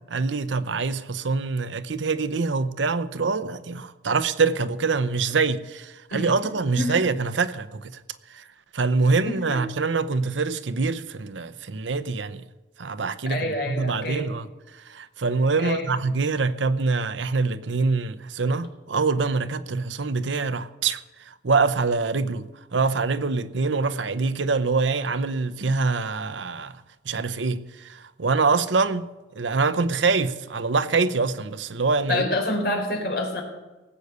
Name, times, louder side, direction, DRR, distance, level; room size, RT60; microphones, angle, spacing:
voice 1, 0.1-8.0 8.3-8.4 8.7-12.5 12.8-32.3, right 4 dB, 85° right, 0.7 m, -25 dB
voice 2, 9.2-9.6 13.2-14.3 15.6-15.9 32.1-33.4, left 1 dB, 55° left, 3.7 m, -27 dB
18.5 x 8.0 x 6.8 m
head